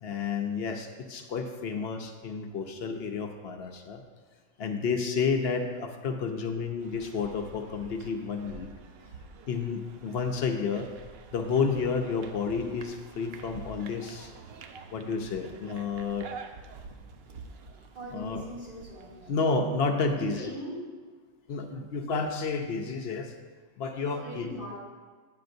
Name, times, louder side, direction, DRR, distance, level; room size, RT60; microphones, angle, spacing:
voice 1, 0.0-4.0 4.6-8.7 9.5-10.9 11.3-14.3 14.9-16.3 18.1-18.4 19.3-20.5 21.5-23.3 23.8-24.6, left 5 dB, 60° left, 4 dB, 0.8 m, -30 dB
sound 1, 6.8-19.3, right 4 dB, 65° right, 0.7 m, -47 dB
voice 2, 17.9-19.4 20.0-20.7 24.1-24.8, equal, 45° right, -8 dB, 2.7 m, -41 dB
9.4 x 7.7 x 2.6 m, 1.5 s
omnidirectional pair, 1.3 m